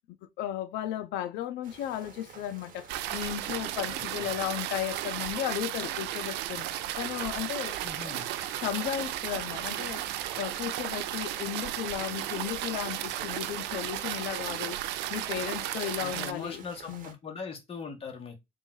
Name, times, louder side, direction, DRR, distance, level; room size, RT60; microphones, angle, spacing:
voice 1, 0.4-7.8 8.6-10.0 10.4-14.8 15.1-17.2, left 11 dB, 85° left, 0.5 m, -35 dB
sound 1, 1.6-17.1, right 6 dB, 55° right, 1.0 m, -51 dB
sound 2, 2.9-16.3, right 13 dB, 90° right, 0.4 m, -34 dB
voice 2, 3.9-4.3 7.8-8.3 16.0-18.3, left 5 dB, 35° left, 1.2 m, -41 dB
3.6 x 2.4 x 3.8 m
cardioid pair, 110°, 17 cm